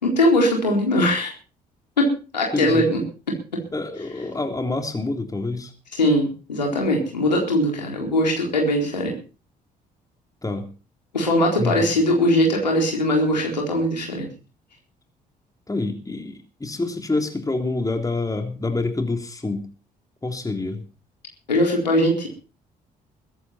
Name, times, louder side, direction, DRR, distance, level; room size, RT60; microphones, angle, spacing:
voice 1, 0.0-1.3 2.0-3.0 3.5-3.6 6.0-9.1 11.1-14.3 21.5-22.3, left 1 dB, 85° left, -1 dB, 4.0 m, -20 dB
voice 2, 2.5-2.9 3.7-5.7 10.4-10.7 11.6-12.0 15.7-19.7 20.2-20.8, left 2 dB, 15° left, 5 dB, 3.4 m, -27 dB
21.5 x 11.5 x 4.4 m, 0.35 s
figure-of-eight pair, 45°, 21 cm